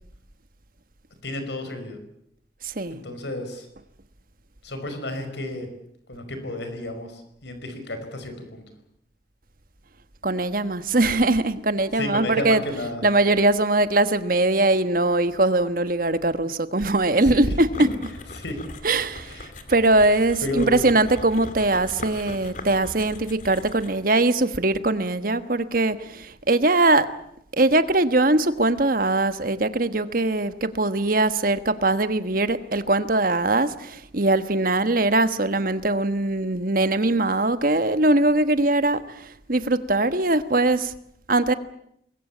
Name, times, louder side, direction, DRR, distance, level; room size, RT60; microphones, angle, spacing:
voice 1, 1.2-2.0 2.9-3.7 4.6-5.7 6.1-8.6 11.9-13.0 17.2-17.5 18.3-18.6 19.2-19.5 20.4-21.0, left 1 dB, 70° left, 8 dB, 5.4 m, -32 dB
voice 2, 2.6-3.0 10.2-12.6 13.0-17.7 18.8-19.3 19.7-27.1 27.5-39.0 39.5-40.9 41.3-41.5, right 2 dB, 50° right, 11 dB, 1.3 m, -21 dB
sound 1, 17.7-24.1, left 2 dB, 45° left, 2.6 m, -40 dB
25.5 x 21.0 x 8.6 m, 0.74 s
head